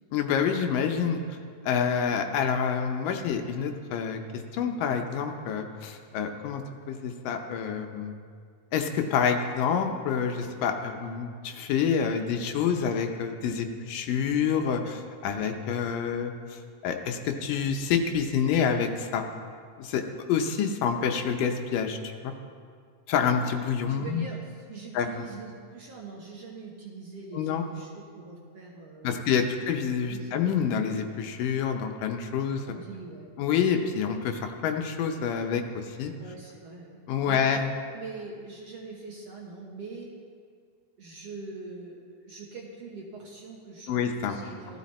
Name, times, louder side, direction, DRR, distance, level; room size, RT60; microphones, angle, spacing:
voice 1, 0.1-1.2 1.6-8.1 8.7-19.2 19.8-20.0 20.3-22.3 23.1-24.2 24.9-25.2 27.3-27.6 29.0-32.7 33.4-36.1 37.1-37.7 43.9-44.4, left 7 dB, 75° left, 5 dB, 2.3 m, -27 dB
voice 2, 23.9-29.5 30.1-30.4 32.4-33.6 36.2-37.0 37.3-37.5 37.9-40.1 41.0-44.8, right 3 dB, 60° right, -2 dB, 1.8 m, -43 dB
15.0 x 13.0 x 4.2 m, 2.1 s
omnidirectional pair, 4.1 m